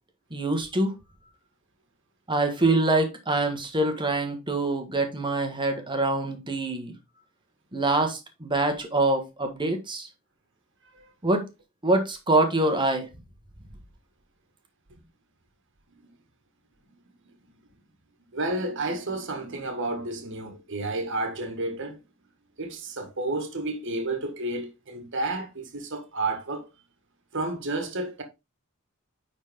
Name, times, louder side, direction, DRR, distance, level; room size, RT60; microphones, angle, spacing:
voice 1, 0.3-0.9 2.3-6.9 7.7-10.1 11.2-11.4 11.8-13.1, right 2 dB, 20° right, 1.5 m, -25 dB
voice 2, 18.3-22.0 22.6-26.7 27.3-28.2, right 2 dB, 60° right, 1.7 m, -31 dB
9.4 x 4.2 x 3.6 m
head